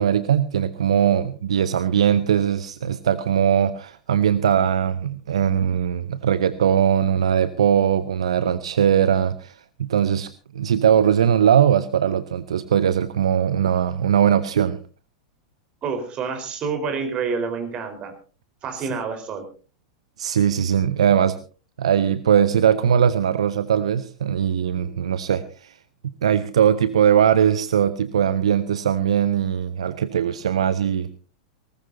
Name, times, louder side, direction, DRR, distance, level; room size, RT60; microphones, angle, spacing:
voice 1, 0.0-10.3 10.5-14.8 18.8-18.9 20.2-21.3 21.8-25.7 26.0-31.1, right 9 dB, 65° right, 14 dB, 0.7 m, -20 dB
voice 2, 15.8-18.1 18.6-19.4, right 5 dB, 30° right, 7 dB, 4.2 m, -28 dB
19.5 x 19.0 x 2.7 m, 0.35 s
figure-of-eight pair, 95°, 3 cm